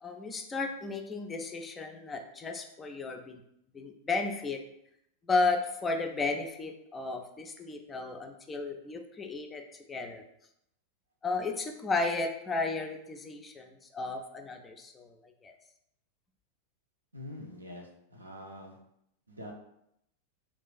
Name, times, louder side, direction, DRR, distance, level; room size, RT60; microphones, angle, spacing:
voice 1, 0.0-3.4 3.7-4.6 5.3-9.6 9.9-10.2 11.2-15.5, left 3 dB, 15° left, 4 dB, 0.4 m, -33 dB
voice 2, 17.1-18.8 19.3-19.5, left 1 dB, 80° right, 1 dB, 0.6 m, -45 dB
2.4 x 2.4 x 3.8 m, 0.78 s
figure-of-eight pair, 90°, 0 cm